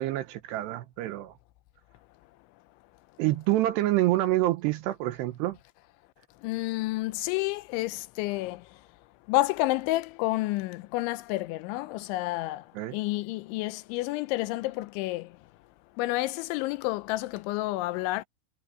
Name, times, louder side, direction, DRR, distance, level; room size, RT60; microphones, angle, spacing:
voice 1, 0.0-1.3 3.2-5.6 12.8-13.0, right 16 dB, 75° right, 2.7 m, -27 dB
voice 2, 6.4-8.6 9.3-12.6 12.9-15.3 16.0-18.2, left 18 dB, 85° left, 3.0 m, -29 dB
omnidirectional pair, 5.4 m